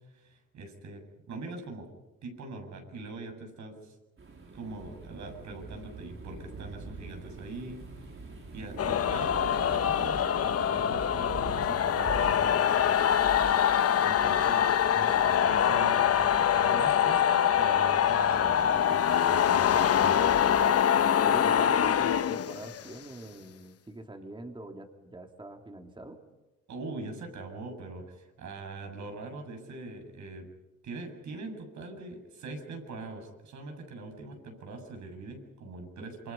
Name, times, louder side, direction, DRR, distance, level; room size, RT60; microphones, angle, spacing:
voice 1, 0.1-1.9 2.2-3.9 4.5-7.8 8.5-13.2 14.0-20.3 26.7-30.5 30.8-36.3, right 3 dB, 70° right, 4 dB, 7.7 m, -42 dB
sound 1, 4.2-22.2, right 3 dB, 45° right, 7.9 m, -45 dB
sound 2, 8.8-23.0, left 9 dB, 55° left, 1.0 m, -24 dB
voice 2, 14.2-15.1 21.0-26.2, right 2 dB, 15° right, 4 dB, 2.8 m, -45 dB
28.0 x 25.0 x 5.6 m, 1.0 s
cardioid pair, 90°, 30 cm